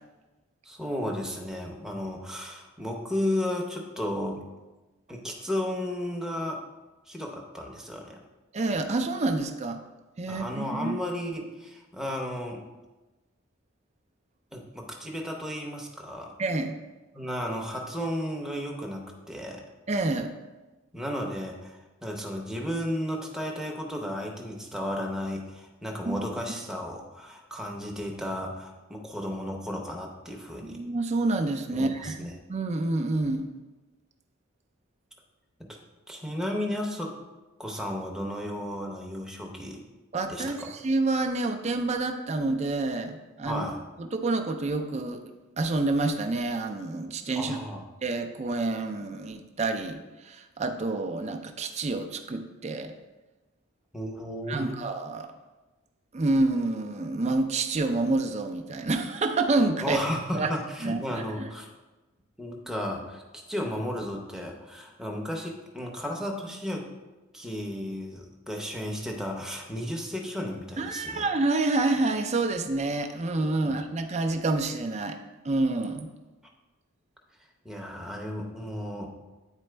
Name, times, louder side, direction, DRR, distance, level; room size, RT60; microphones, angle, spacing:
voice 1, 0.6-4.4 5.1-6.6 7.1-8.2 10.3-12.6 14.5-16.3 17.1-19.6 20.9-30.8 31.7-32.3 35.6-35.7 36.1-37.1 37.6-39.8 40.3-40.7 43.4-43.8 47.4-47.8 53.9-54.8 59.8-61.7 62.4-63.2 63.5-66.9 67.3-71.2 73.6-73.8 77.6-79.1, left 1 dB, 5° right, 0 dB, 0.7 m, -34 dB
voice 2, 8.5-9.8 10.2-11.0 16.4-16.7 19.9-20.3 26.1-26.2 30.6-33.5 40.1-43.6 44.0-45.2 45.6-47.6 48.0-52.9 54.5-55.3 56.1-60.0 60.3-60.5 60.8-61.5 70.8-75.2 75.4-76.1, right 2 dB, 30° right, 5 dB, 0.5 m, -28 dB
9.0 x 4.2 x 3.3 m, 1.1 s
head